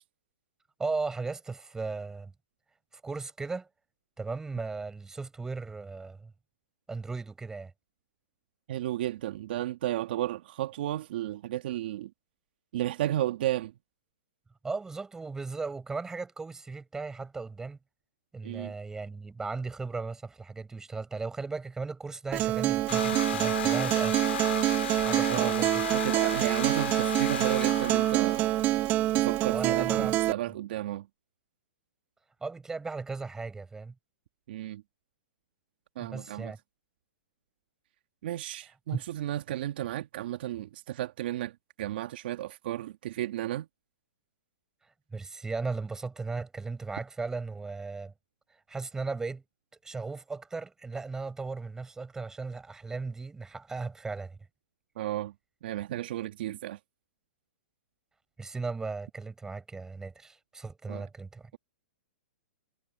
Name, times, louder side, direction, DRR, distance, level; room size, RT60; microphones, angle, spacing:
voice 1, 0.8-2.3 2.9-3.7 4.2-6.3 6.9-7.7 14.6-17.8 18.3-24.2 25.0-25.9 29.5-30.2 32.4-33.9 36.0-36.6 38.9-39.0 44.8-48.1 48.5-49.4 49.8-54.4 58.4-61.5, right 4 dB, 10° right, 6.1 m, -36 dB
voice 2, 8.7-12.1 12.7-13.7 18.4-18.7 25.3-28.5 29.2-31.1 34.5-34.8 36.0-36.5 38.2-41.5 41.8-43.7 55.0-55.3 55.6-56.8 60.9-61.0, right 13 dB, 55° right, 1.4 m, -33 dB
Acoustic guitar, 22.3-30.3, right 15 dB, 30° right, 0.9 m, -26 dB
sound 1, 22.9-29.0, left 10 dB, 70° left, 3.5 m, -35 dB
hypercardioid pair, 135°, 6 cm